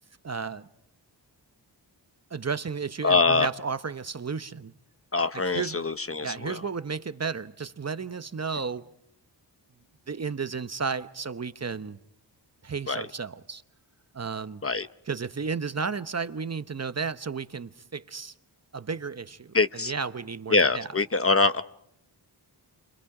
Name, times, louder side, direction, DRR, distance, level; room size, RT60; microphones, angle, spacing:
voice 1, 0.2-0.7 2.3-4.7 5.5-5.8 6.2-8.9 10.1-12.0 12.6-13.6 14.1-14.6 15.1-18.3 18.7-20.9, right 5 dB, 35° right, 0.9 m, -33 dB
voice 2, 3.0-3.5 5.1-6.6 12.9-13.0 14.6-14.9 19.5-19.9 20.5-21.6, left 3 dB, 30° left, 0.8 m, -24 dB
29.5 x 26.0 x 4.9 m
wide cardioid pair, 90°, 44 cm